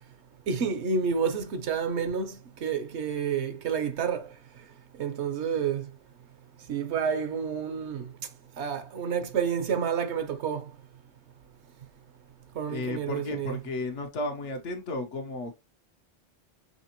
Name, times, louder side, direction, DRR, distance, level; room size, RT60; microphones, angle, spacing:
voice 1, 0.5-4.3 5.0-5.9 6.7-8.1 8.6-10.6 12.6-13.6, right 6 dB, 75° right, 1.0 m, -29 dB
voice 2, 12.7-15.6, left 2 dB, 85° left, 1.2 m, -34 dB
5.4 x 3.3 x 2.9 m
omnidirectional pair, 1.2 m